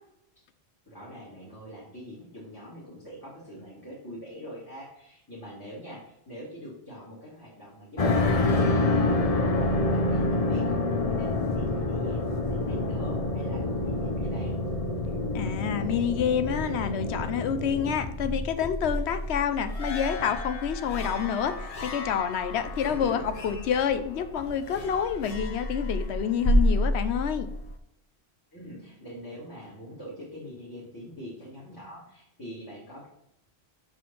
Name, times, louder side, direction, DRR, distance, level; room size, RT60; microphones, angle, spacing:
voice 1, 0.9-10.8 11.1-14.6 22.7-23.2 28.5-33.1, equal, 20° left, -6 dB, 2.1 m, -43 dB
sound 1, 8.0-27.7, left 2 dB, 40° left, 0.8 m, -28 dB
voice 2, 15.3-27.5, left 8 dB, 85° left, 10 dB, 0.9 m, -28 dB
5.7 x 5.0 x 5.3 m, 0.81 s
omnidirectional pair, 1.1 m